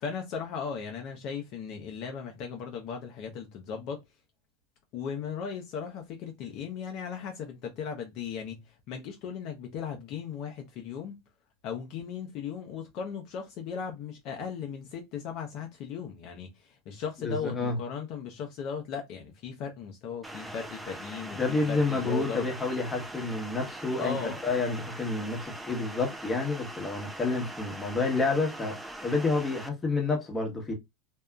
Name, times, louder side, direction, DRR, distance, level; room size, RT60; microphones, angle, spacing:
voice 1, 0.0-4.0 4.9-11.2 11.6-22.5 24.0-24.4, left 6 dB, 55° left, 0.6 m, -37 dB
voice 2, 17.2-17.8 21.4-30.7, left 3 dB, 15° left, 1.0 m, -29 dB
sound 1, 20.2-29.7, right 1 dB, 10° right, 0.4 m, -42 dB
2.7 x 2.3 x 2.3 m
supercardioid pair, 115°, 0 cm